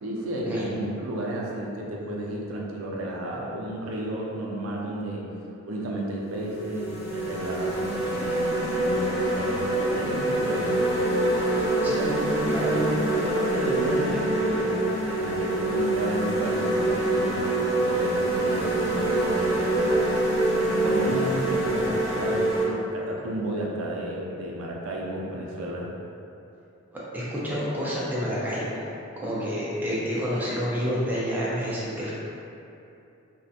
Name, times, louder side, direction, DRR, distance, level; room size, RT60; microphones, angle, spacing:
voice 1, 0.0-5.2 5.6-10.9 11.8-20.4 20.8-25.9, right 1 dB, 85° right, -2 dB, 0.4 m, -32 dB
sound 1, 5.7-5.9 6.5-22.6, right 1 dB, 55° left, 0.7 m, -25 dB
voice 2, 11.4-11.9 12.5-12.7 26.9-28.8 29.2-32.2, equal, 10° right, -8 dB, 0.4 m, -29 dB
2.4 x 2.1 x 2.7 m, 2.7 s
head